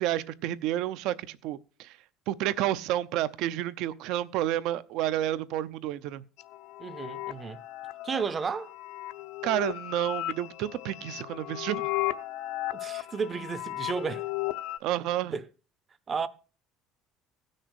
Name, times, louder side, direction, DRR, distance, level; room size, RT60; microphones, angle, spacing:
voice 1, 0.0-2.0 2.3-6.2 9.4-11.9 14.8-15.3, right 13 dB, 65° right, 0.7 m, -30 dB
sound 1, 6.4-14.8, left 16 dB, 70° left, 0.7 m, -35 dB
voice 2, 6.8-7.6 8.0-8.7 12.7-14.3 15.3-15.5 16.1-16.3, right 5 dB, 25° right, 0.7 m, -32 dB
16.0 x 6.5 x 6.3 m
cardioid pair, 155°, 0 cm